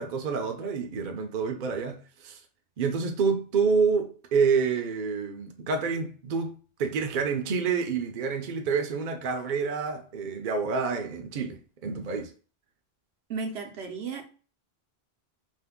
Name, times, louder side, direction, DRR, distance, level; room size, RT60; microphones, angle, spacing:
voice 1, 0.0-2.4 2.8-12.3, right 5 dB, 55° right, 0.7 m, -28 dB
voice 2, 13.3-14.2, right 4 dB, 80° right, 1.0 m, -34 dB
2.7 x 2.5 x 3.5 m
omnidirectional pair, 1.1 m